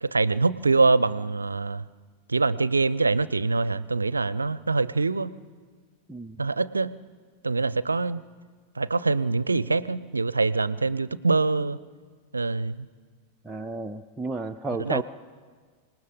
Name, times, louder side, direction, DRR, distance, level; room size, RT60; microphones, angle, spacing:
voice 1, 0.0-1.8 2.3-5.3 6.4-7.0 7.4-8.2 8.8-11.8 12.3-12.9 14.8-15.0, right 3 dB, 80° right, 19 dB, 0.5 m, -24 dB
voice 2, 6.1-6.4 13.4-15.0, right 3 dB, 10° right, 3 dB, 0.5 m, -32 dB
26.0 x 19.0 x 5.3 m, 1.5 s
figure-of-eight pair, 90°, 0 cm